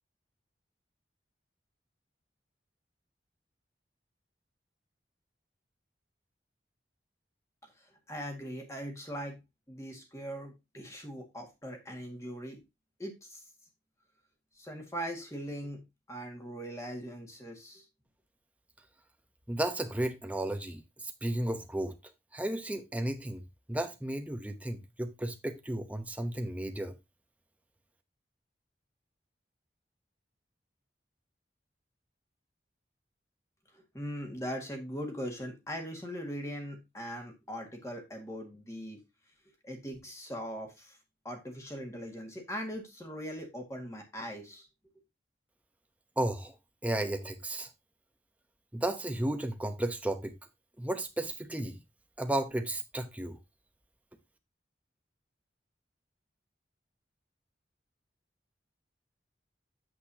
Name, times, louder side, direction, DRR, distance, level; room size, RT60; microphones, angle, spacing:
voice 1, 8.1-9.4 9.7-12.6 13.0-13.4 14.6-15.8 16.1-17.8 33.9-39.0 39.6-41.0 41.2-44.7, equal, 15° left, 1.9 m, -40 dB
voice 2, 19.5-21.9 22.3-23.4 23.7-26.9 46.2-46.6 46.8-47.7 48.7-50.4 50.8-51.8 52.2-53.4, right 1 dB, 10° right, 0.8 m, -33 dB
8.4 x 8.0 x 2.8 m
head